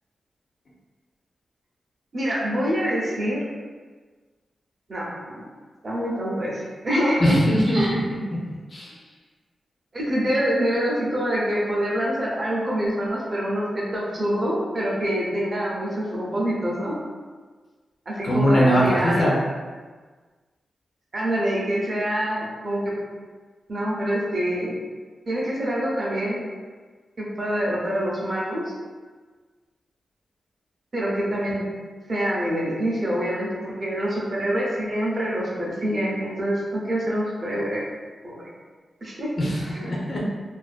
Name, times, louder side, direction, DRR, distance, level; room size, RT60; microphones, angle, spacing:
voice 1, 2.1-3.4 4.9-5.4 5.8-7.2 7.7-7.9 9.9-17.0 18.1-19.3 21.1-23.0 23.7-24.7 25.3-26.4 27.2-28.6 30.9-31.6 32.1-37.8 38.2-38.4 39.0-39.3 39.7-39.8, equal, 35° right, -5 dB, 0.5 m, -25 dB
voice 2, 7.2-8.2 8.7-8.9 18.2-19.4 39.4-40.2, equal, 40° left, -4 dB, 0.4 m, -21 dB
2.4 x 2.1 x 2.4 m, 1.4 s
wide cardioid pair, 165°, 0 cm